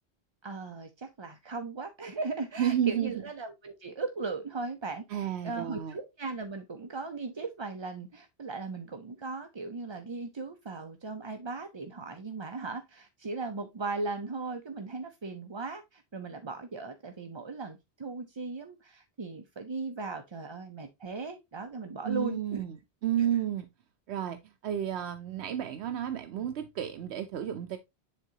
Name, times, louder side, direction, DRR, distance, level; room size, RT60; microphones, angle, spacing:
voice 1, 0.4-22.6 23.2-23.4, right 3 dB, 35° right, 0.5 m, -38 dB
voice 2, 2.6-3.1 5.1-5.9 22.0-22.7 23.0-23.7 24.1-27.8, right 10 dB, 80° right, 0.9 m, -31 dB
10.0 x 3.7 x 2.7 m
omnidirectional pair, 1.1 m